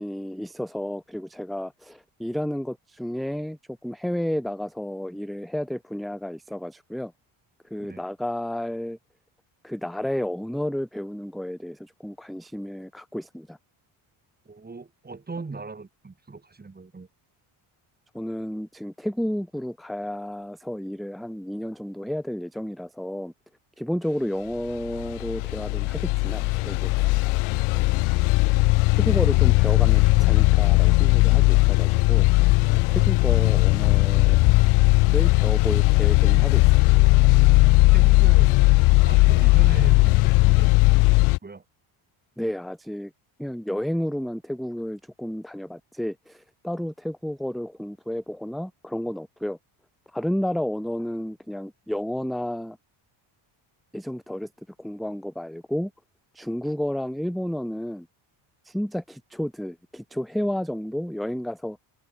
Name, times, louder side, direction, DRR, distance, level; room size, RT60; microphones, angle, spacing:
voice 1, 0.0-7.1 7.6-9.0 9.6-13.6 18.1-23.3 23.8-27.2 27.7-28.2 28.9-32.2 32.7-34.6 35.1-36.9 42.4-43.1 43.4-49.6 50.1-52.8 53.9-54.5 54.8-55.9 56.3-58.1 58.6-61.8, equal, ahead, 0.4 m, -31 dB
voice 2, 14.5-17.1 37.9-38.6 39.0-41.6, right 4 dB, 20° right, 2.8 m, -38 dB
sound 1, 24.9-41.4, left 23 dB, 80° left, 0.6 m, -18 dB
open air
cardioid pair, 120°, 49 cm